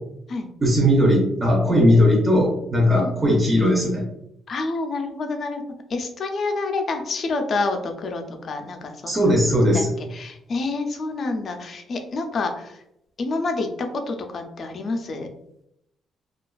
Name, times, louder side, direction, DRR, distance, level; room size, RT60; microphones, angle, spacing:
voice 1, 0.6-4.0 9.0-9.9, equal, 20° right, -3 dB, 0.6 m, -18 dB
voice 2, 4.5-5.6 5.9-9.2 9.7-9.8 10.1-12.8 13.2-15.3, left 3 dB, 50° left, 5 dB, 0.4 m, -28 dB
2.4 x 2.3 x 2.2 m, 0.78 s
cardioid pair, 90°, 0 cm